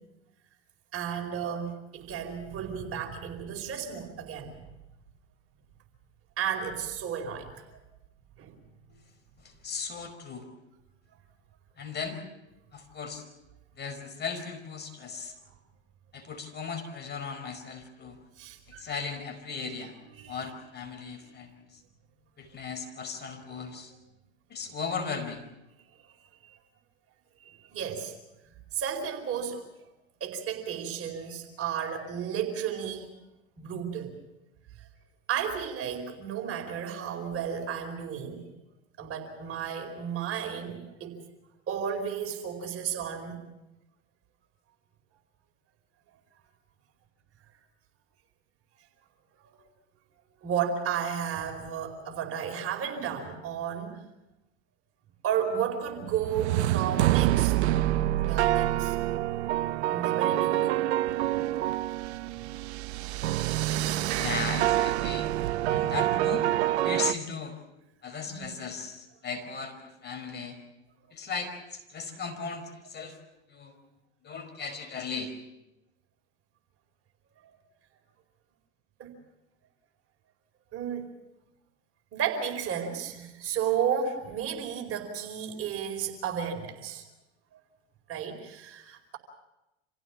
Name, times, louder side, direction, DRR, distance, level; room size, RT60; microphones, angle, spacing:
voice 1, 0.9-4.7 6.4-7.6 8.4-8.5 15.1-15.2 18.4-18.9 20.0-20.5 21.2-21.3 26.1-26.2 26.4-26.6 27.4-28.1 28.4-29.6 30.2-33.1 33.6-34.2 34.8-34.9 35.3-38.4 39.0-41.2 41.7-43.4 50.4-54.0 55.2-57.6 58.2-59.0 59.9-60.9 62.4-62.5 63.5-63.6 63.9-64.2 68.3-68.6 79.0-79.1 80.7-81.1 82.1-87.1 87.5-87.6 88.1-89.2, right 8 dB, 40° right, 3 dB, 4.7 m, -33 dB
voice 2, 9.6-10.5 11.8-12.2 12.7-13.2 13.8-15.3 16.1-18.2 18.8-19.9 20.3-21.6 22.4-23.9 24.5-25.5 64.2-65.3 65.7-66.4 66.8-67.6 68.0-70.6 71.1-73.1 73.5-73.7 74.2-75.3, left 5 dB, 30° left, 5 dB, 5.0 m, -36 dB
sound 1, 56.0-67.1, right 14 dB, 75° right, 0.8 m, -27 dB
27.5 x 16.0 x 7.2 m, 0.92 s
hypercardioid pair, 90°, 34 cm